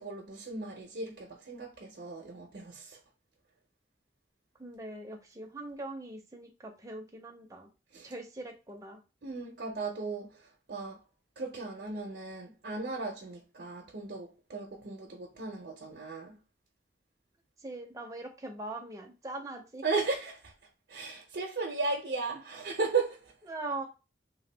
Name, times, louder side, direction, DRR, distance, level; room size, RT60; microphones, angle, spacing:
voice 1, 0.0-3.0 7.9-8.1 9.2-11.0 11.4-16.3 19.8-20.5 20.9-23.3, right 4 dB, 65° right, 0.6 m, -36 dB
voice 2, 4.6-7.7 8.0-9.0 17.6-19.8 23.5-23.9, right 2 dB, 20° right, 0.6 m, -41 dB
2.9 x 2.2 x 3.3 m
head